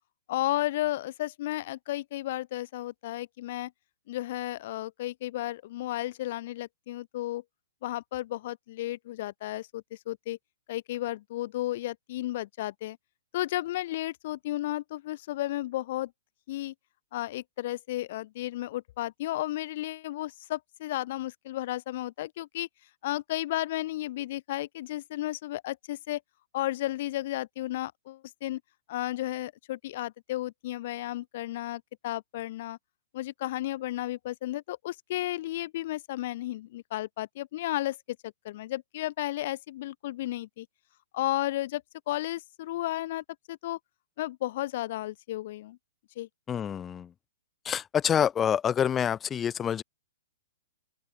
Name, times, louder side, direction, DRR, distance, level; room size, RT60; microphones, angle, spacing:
voice 1, 0.3-3.7 4.1-7.4 7.8-10.4 10.7-13.0 13.3-16.1 16.5-16.7 17.1-22.7 23.0-26.2 26.5-28.6 28.9-32.8 33.1-40.7 41.1-43.8 44.2-45.8 46.2-46.3, left 15 dB, 50° left, 3.6 m, -33 dB
voice 2, 46.5-47.1 47.6-49.8, left 8 dB, 20° left, 1.2 m, -27 dB
open air
hypercardioid pair, 120°, 0 cm